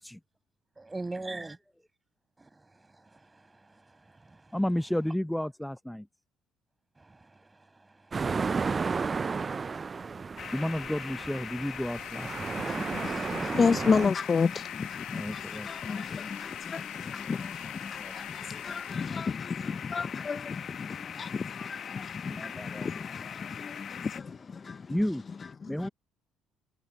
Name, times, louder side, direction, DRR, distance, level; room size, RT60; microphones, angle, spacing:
voice 1, 0.8-1.6 2.4-4.6 7.0-10.5, right 2 dB, 20° right, 6.5 m, -45 dB
voice 2, 4.5-6.1 10.5-12.6 15.1-15.9 18.0-18.1 22.3-23.0 24.9-25.2 25.7-25.9, left 1 dB, 5° left, 0.7 m, -32 dB
sound 1, 8.1-14.1, right 5 dB, 35° right, 0.4 m, -33 dB
sound 2, 10.4-24.2, left 8 dB, 55° left, 1.1 m, -41 dB
sound 3, 11.6-19.3, left 22 dB, 85° left, 1.9 m, -49 dB
voice 3, 12.6-25.1 25.4-25.9, left 5 dB, 40° left, 0.5 m, -32 dB
hypercardioid pair, 65°, 0 cm